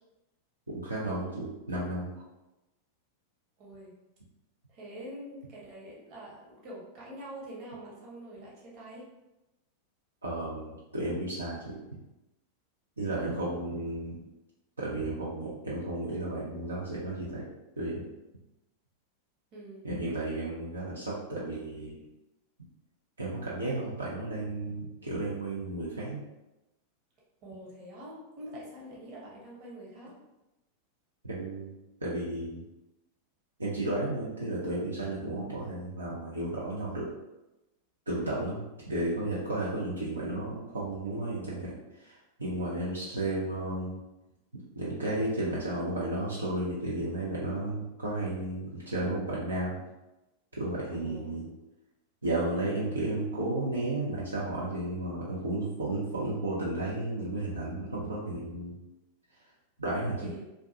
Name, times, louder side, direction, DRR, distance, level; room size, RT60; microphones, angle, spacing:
voice 1, 0.7-2.1 10.2-12.0 13.0-14.2 14.8-17.5 17.8-18.0 19.8-22.0 23.2-26.2 31.2-31.7 32.0-32.6 33.6-37.1 38.1-44.0 44.8-49.8 50.6-51.4 52.2-58.8 59.8-60.3, right 2 dB, 75° right, -7 dB, 0.5 m, -33 dB
voice 2, 3.6-3.9 4.7-9.1 13.2-13.6 19.5-19.9 27.4-30.1 38.1-38.4 42.8-43.1 50.9-51.3 60.2-60.4, right 1 dB, 40° right, -5 dB, 0.9 m, -45 dB
2.5 x 2.2 x 2.6 m, 0.98 s
figure-of-eight pair, 90°, 0 cm